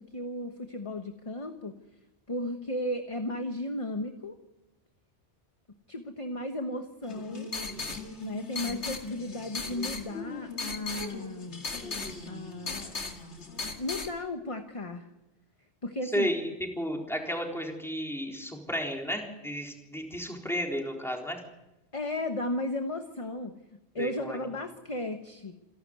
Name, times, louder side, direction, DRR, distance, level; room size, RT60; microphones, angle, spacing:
voice 1, 0.0-1.8 2.3-4.4 5.9-7.5 8.2-11.6 12.3-13.0 13.6-15.1 15.8-16.3 21.9-25.5, left 1 dB, 30° left, 6 dB, 1.2 m, -35 dB
sound 1, 7.0-14.1, left 3 dB, 90° left, 2.5 m, -37 dB
voice 2, 16.1-16.5 16.8-21.4 24.0-24.4, equal, ahead, 0 dB, 3.9 m, -33 dB
28.0 x 12.0 x 9.5 m, 0.97 s
omnidirectional pair, 1.1 m